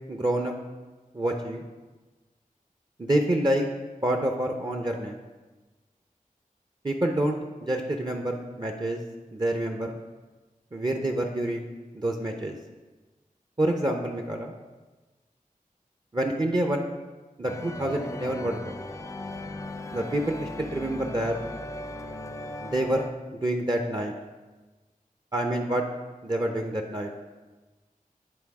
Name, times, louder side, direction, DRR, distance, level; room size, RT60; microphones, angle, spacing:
voice 1, 0.1-0.5 1.1-1.6 3.0-3.7 4.0-5.2 6.8-9.0 9.3-10.0 10.7-11.7 11.9-12.6 13.6-14.5 16.1-16.9 17.4-18.7 19.9-21.3 22.6-23.0 23.3-24.1 25.3-25.8 26.2-27.1, right 1 dB, 30° right, 3 dB, 0.6 m, -27 dB
sound 1, 17.4-23.1, left 1 dB, 20° left, 0.5 m, -37 dB
9.8 x 3.3 x 4.7 m, 1.2 s
wide cardioid pair, 45°, 15 cm